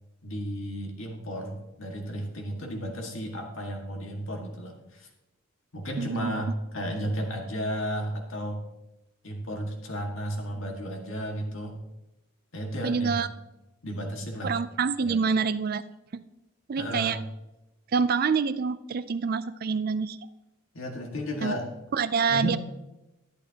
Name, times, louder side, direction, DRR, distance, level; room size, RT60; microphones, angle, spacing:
voice 1, 0.2-5.1 5.7-8.6 9.2-11.8 12.5-13.2 13.8-14.5 15.0-15.2 16.8-17.2 20.7-21.6 22.3-22.6, equal, 70° left, 1 dB, 1.9 m, -33 dB
voice 2, 6.0-6.4 12.8-13.3 14.4-15.8 16.1-16.2 16.7-17.2 17.9-20.2 21.4-21.5 21.9-22.6, right 5 dB, 45° right, 14 dB, 0.4 m, -26 dB
11.5 x 10.5 x 2.9 m, 0.96 s
head